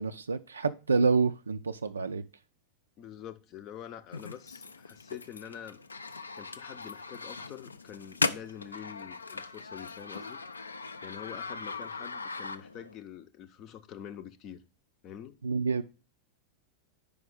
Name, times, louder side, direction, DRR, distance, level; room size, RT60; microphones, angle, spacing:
voice 1, 0.0-2.2 15.4-15.8, right 4 dB, 75° right, 0.4 m, -28 dB
voice 2, 3.0-5.8 6.4-10.4 11.0-14.6 15.0-15.4, left 9 dB, 35° left, 0.6 m, -46 dB
sound 1, 4.1-13.0, left 4 dB, 75° left, 0.4 m, -38 dB
5.2 x 4.9 x 6.2 m
figure-of-eight pair, 90°, 0 cm